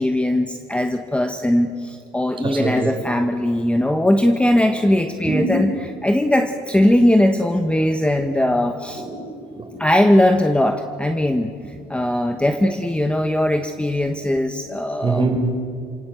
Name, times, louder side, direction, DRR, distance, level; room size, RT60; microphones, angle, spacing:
voice 1, 0.0-9.0 9.8-11.5 11.9-15.4, left 1 dB, 5° left, 6 dB, 1.2 m, -19 dB
voice 2, 2.4-2.9 5.2-5.6 9.0-9.7 15.0-15.6, right 2 dB, 30° right, 3 dB, 5.4 m, -23 dB
28.5 x 18.5 x 8.0 m, 2.4 s
cardioid pair, 110°, 17 cm